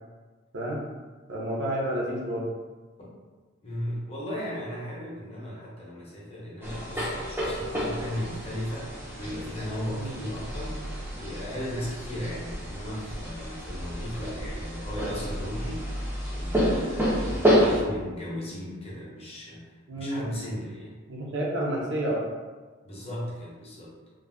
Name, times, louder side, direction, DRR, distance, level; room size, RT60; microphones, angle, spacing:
voice 1, 1.3-2.5 9.9-10.2 19.9-20.2 21.1-22.2, right 1 dB, 60° right, -3 dB, 0.6 m, -30 dB
voice 2, 3.6-10.8 11.2-20.9 22.8-24.0, equal, 30° left, -6 dB, 0.7 m, -36 dB
sound 1, 6.6-17.8, equal, 10° right, 0.4 m, -29 dB
2.4 x 2.1 x 3.3 m, 1.3 s
head